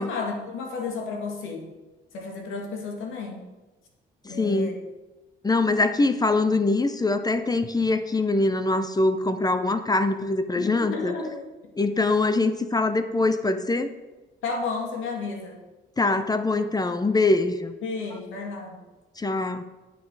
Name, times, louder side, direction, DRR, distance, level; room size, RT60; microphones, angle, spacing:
voice 1, 0.0-1.6 2.1-3.4 4.3-4.8 10.5-11.4 14.4-15.6 17.8-18.8, left 4 dB, 85° left, 1 dB, 2.0 m, -32 dB
voice 2, 4.2-4.8 5.4-11.1 11.8-13.9 16.0-17.7 19.2-19.6, left 2 dB, 20° left, 10 dB, 0.6 m, -23 dB
9.4 x 6.5 x 4.7 m, 1.1 s
cardioid pair, 90°, 20 cm